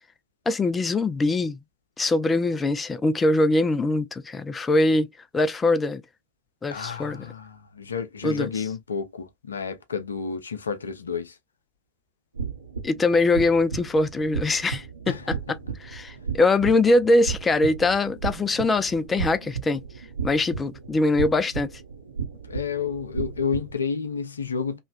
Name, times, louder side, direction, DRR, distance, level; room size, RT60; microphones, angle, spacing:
voice 1, 0.5-1.6 2.0-5.1 5.3-6.0 6.6-7.3 8.2-8.5 12.8-15.4 15.8-19.8 20.2-21.8, left 2 dB, 15° left, 0.3 m, -22 dB
voice 2, 6.7-11.3 15.1-15.6 22.4-24.8, left 6 dB, 70° left, 0.6 m, -30 dB
Heartbeat Mono, 12.3-23.8, right 6 dB, 75° right, 0.7 m, -34 dB
3.1 x 2.2 x 2.3 m
figure-of-eight pair, 90°, 0 cm